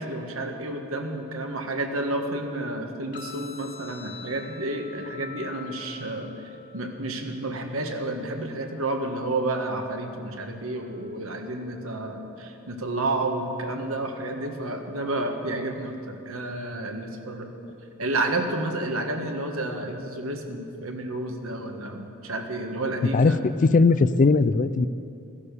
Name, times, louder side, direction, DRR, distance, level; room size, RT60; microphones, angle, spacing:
voice 1, 0.0-6.3 6.7-17.5 18.0-23.4, right 2 dB, 70° right, 4 dB, 1.6 m, -30 dB
sound 1, 3.1-11.1, left 7 dB, 55° left, 2.4 m, -47 dB
voice 2, 23.1-24.9, left 3 dB, 35° left, 14 dB, 0.4 m, -19 dB
15.5 x 11.0 x 6.8 m, 2.6 s
head